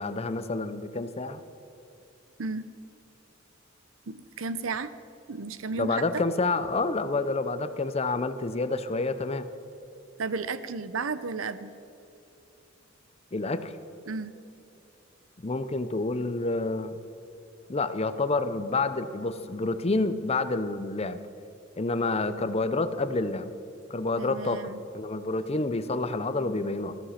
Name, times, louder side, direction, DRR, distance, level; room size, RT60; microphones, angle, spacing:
voice 1, 0.0-1.4 5.8-9.5 13.3-13.7 15.4-16.9 17.7-21.2 21.8-23.5 23.9-26.9, left 3 dB, 30° left, 11 dB, 0.7 m, -28 dB
voice 2, 4.1-4.9 5.3-6.2 10.2-11.7 14.1-14.3 24.2-24.8, right 4 dB, 80° right, 14 dB, 0.7 m, -33 dB
14.5 x 13.5 x 5.7 m, 2.8 s
head